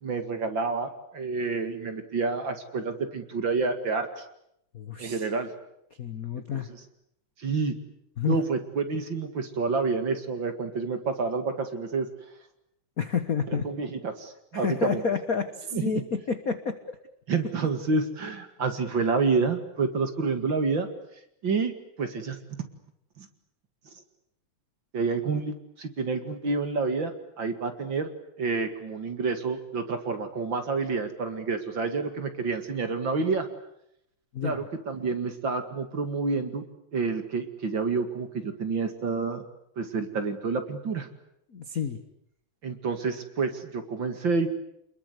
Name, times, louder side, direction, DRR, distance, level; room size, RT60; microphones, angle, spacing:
voice 1, 0.0-4.2 5.0-5.5 6.5-6.8 7.4-7.8 8.2-12.1 13.6-15.0 15.7-16.0 17.3-20.9 21.4-21.7 22.0-22.4 23.2-23.3 24.9-28.1 28.4-33.5 34.4-36.6 36.9-39.4 39.8-41.1 42.6-44.5, right 4 dB, 45° right, 8 dB, 2.5 m, -28 dB
voice 2, 4.7-5.3 6.0-6.7 8.2-8.4 13.0-13.7 14.5-17.0 34.3-34.7 41.5-42.0, left 6 dB, 50° left, 9 dB, 1.0 m, -29 dB
28.5 x 21.5 x 8.3 m, 0.76 s
omnidirectional pair, 3.4 m